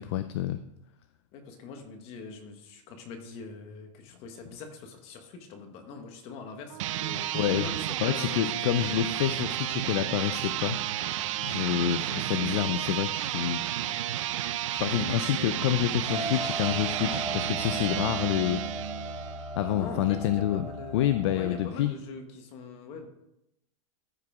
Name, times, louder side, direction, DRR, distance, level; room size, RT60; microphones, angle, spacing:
voice 1, 0.1-0.6 7.3-7.7 8.0-10.8 11.4-13.7 14.7-18.6 19.6-20.7 20.9-21.9, left 12 dB, 55° left, 11 dB, 0.4 m, -28 dB
voice 2, 1.3-9.1 19.6-23.1, left 4 dB, 35° left, 5 dB, 1.4 m, -43 dB
sound 1, 6.7-19.5, right 13 dB, 65° right, 0.6 m, -32 dB
sound 2, 16.1-21.7, right 1 dB, ahead, 1.9 m, -37 dB
14.0 x 4.9 x 3.6 m, 0.83 s
supercardioid pair, 165°, 17 cm